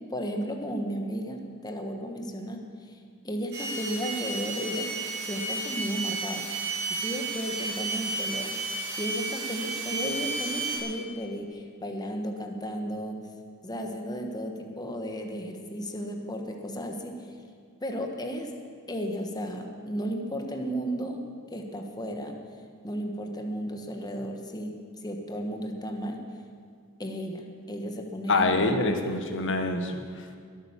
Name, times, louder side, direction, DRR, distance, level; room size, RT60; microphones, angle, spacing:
voice 1, 0.0-2.6 2.9-3.0 3.2-4.9 5.2-6.5 6.8-8.5 9.0-13.2 13.6-17.3 17.8-18.5 18.9-21.2 21.5-22.3 22.8-26.2 27.0-28.5 28.8-29.0, equal, 20° left, 3 dB, 1.4 m, -34 dB
sound 1, 3.5-10.8, right 3 dB, 55° right, 4.8 m, -32 dB
voice 2, 28.3-30.4, left 2 dB, 60° left, 6 dB, 1.4 m, -26 dB
21.5 x 9.1 x 7.3 m, 2.1 s
head